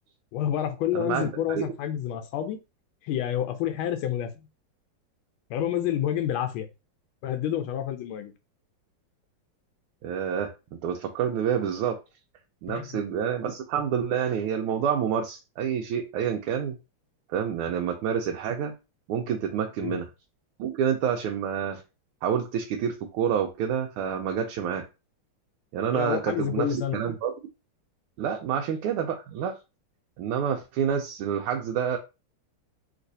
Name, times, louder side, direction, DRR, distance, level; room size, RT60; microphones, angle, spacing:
voice 1, 0.3-2.6 3.0-4.5 5.5-6.7 7.2-8.3 12.7-13.0 19.8-20.0 25.9-27.0, left 10 dB, 80° left, 7 dB, 1.4 m, -28 dB
voice 2, 0.9-1.7 10.0-12.0 12.6-16.7 17.3-18.7 19.1-20.1 20.6-21.8 22.2-24.8 25.7-27.3 28.2-29.5 30.2-32.0, right 8 dB, 85° right, 2 dB, 1.5 m, -28 dB
3.2 x 3.0 x 2.6 m, 0.27 s
omnidirectional pair, 2.3 m